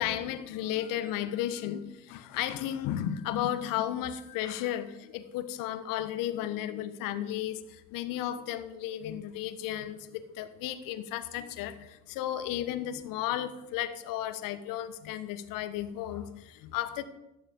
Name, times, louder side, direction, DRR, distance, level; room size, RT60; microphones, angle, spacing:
voice 1, 0.0-17.0, left 11 dB, 60° left, 12 dB, 1.3 m, -34 dB
14.5 x 11.5 x 3.8 m, 0.95 s
hypercardioid pair, 70°, 38 cm